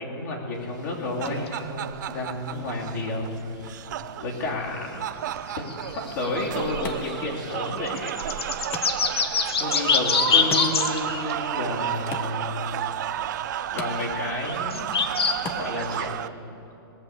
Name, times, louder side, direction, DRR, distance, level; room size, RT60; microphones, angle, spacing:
voice 1, 0.0-3.3 4.2-5.0 5.5-8.5 9.6-12.7 13.7-14.9 15.5-16.2, left 2 dB, 50° left, -3 dB, 3.0 m, -31 dB
sound 1, 0.8-16.3, right 11 dB, 50° right, 0.5 m, -32 dB
sound 2, 1.2-1.6 2.5-2.6 4.9-5.0 5.2-5.3 5.5-11.5 13.1-13.2 14.5-15.4 16.0-16.1, left 6 dB, 90° left, 1.2 m, -26 dB
Wood, 6.0-16.0, left 4 dB, 15° left, 0.7 m, -43 dB
19.5 x 6.8 x 7.2 m, 2.9 s
hypercardioid pair, 165°, 13 cm